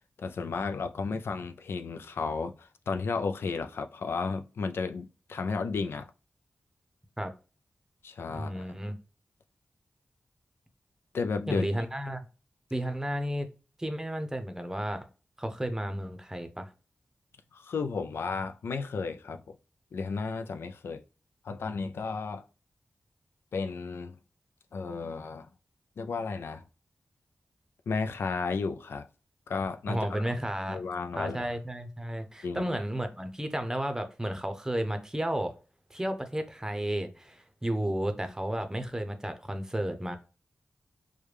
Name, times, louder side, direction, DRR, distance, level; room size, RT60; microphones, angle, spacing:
voice 1, 0.2-6.1 8.0-8.7 11.1-11.7 17.5-19.6 19.9-21.0 21.4-22.5 23.5-24.2 24.7-25.5 26.0-26.6 27.9-29.1 29.5-30.2 30.7-31.5 32.4-32.7, left 4 dB, 90° left, 0.3 m, -33 dB
voice 2, 8.3-9.0 11.5-12.2 12.7-13.5 13.8-15.1 15.4-16.7 29.9-30.8 31.1-35.5 35.9-40.2, right 1 dB, 15° right, 0.6 m, -32 dB
4.7 x 2.2 x 3.3 m
wide cardioid pair, 65°, 4 cm